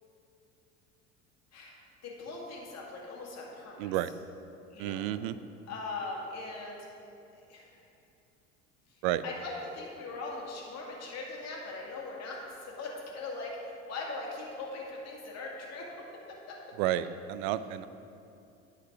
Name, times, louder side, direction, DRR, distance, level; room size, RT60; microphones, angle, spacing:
voice 1, 1.5-4.0 4.7-5.0 5.7-6.9 7.3-7.7 9.2-16.6, left 3 dB, 40° left, -2 dB, 2.2 m, -40 dB
voice 2, 3.8-4.1 4.8-5.4 9.0-9.2 16.8-17.9, right 13 dB, 50° right, 14 dB, 0.5 m, -31 dB
9.4 x 5.2 x 6.0 m, 2.7 s
figure-of-eight pair, 70°, 39 cm